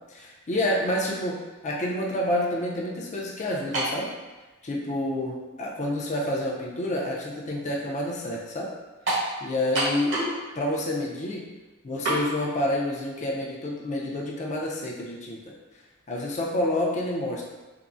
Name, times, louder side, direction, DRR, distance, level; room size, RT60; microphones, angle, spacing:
voice 1, 0.1-1.4 1.6-4.1 4.6-8.7 9.4-10.2 10.5-11.5 11.8-15.4 16.1-17.4, left 1 dB, 35° left, -3 dB, 0.5 m, -28 dB
sound 1, 3.7-4.0 4.9-5.0 9.1-9.3 9.7-10.4 10.7-10.8 12.0-12.2, right 1 dB, 60° right, 1.1 m, -26 dB
3.5 x 2.0 x 2.5 m, 1.2 s
head